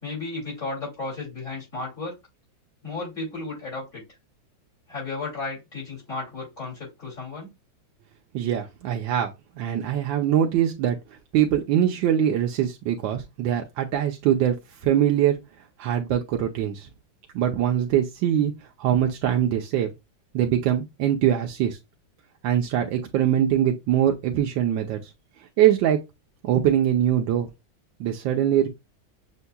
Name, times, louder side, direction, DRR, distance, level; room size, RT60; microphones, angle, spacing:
voice 1, 0.0-2.2 2.8-4.0 4.9-7.5, left 3 dB, 40° left, 2.9 m, -34 dB
voice 2, 8.3-9.3 9.6-11.0 11.3-14.5 14.8-15.4 15.8-16.9 17.3-18.5 18.8-19.9 20.3-21.8 22.4-25.0 25.6-26.0 26.4-27.5 28.0-28.7, right 10 dB, 80° right, 1.4 m, -22 dB
7.0 x 2.8 x 2.2 m
omnidirectional pair, 2.1 m